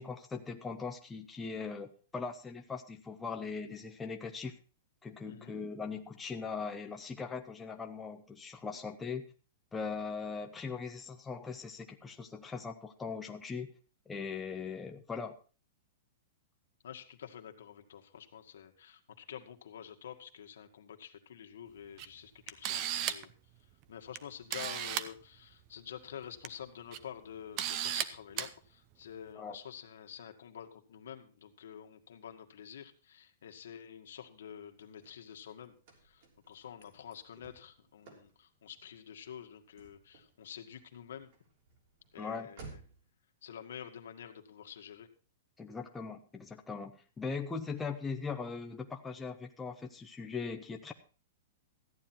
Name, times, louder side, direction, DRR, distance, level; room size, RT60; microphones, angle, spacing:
voice 1, 0.0-4.6 5.0-9.3 9.7-13.7 14.1-15.4 29.3-29.6 42.2-42.5 45.6-50.9, left 5 dB, 10° left, 4 dB, 0.7 m, -40 dB
voice 2, 16.8-23.3 23.9-35.7 36.0-41.3 42.1-42.6 43.4-45.1, left 9 dB, 85° left, 5 dB, 1.7 m, -48 dB
Camera, 22.0-22.1 22.5-23.3 24.1-24.2 24.5-25.1 26.2-26.5 26.9-27.0 27.6-28.0 28.4-28.5, right 10 dB, 30° right, 0.7 m, -34 dB
Car / Slam, 34.4-43.1, right 4 dB, 45° right, 3.3 m, -58 dB
14.0 x 9.6 x 4.4 m, 0.36 s
supercardioid pair, 170°, 0 cm